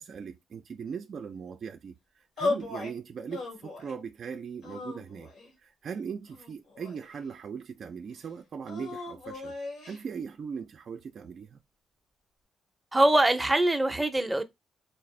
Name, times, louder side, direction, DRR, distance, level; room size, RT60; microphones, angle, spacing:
voice 1, 0.0-5.3 5.6-9.5 9.8-11.6, right 6 dB, 55° right, 0.4 m, -39 dB
sound 1, 2.4-2.9 3.3-4.0 4.6-5.5 6.3-7.3 8.6-10.0, left 3 dB, 75° left, 1.7 m, -36 dB
voice 2, 12.9-14.4, right 1 dB, 10° right, 0.6 m, -23 dB
4.1 x 2.4 x 3.1 m
cardioid pair, 90°, 0 cm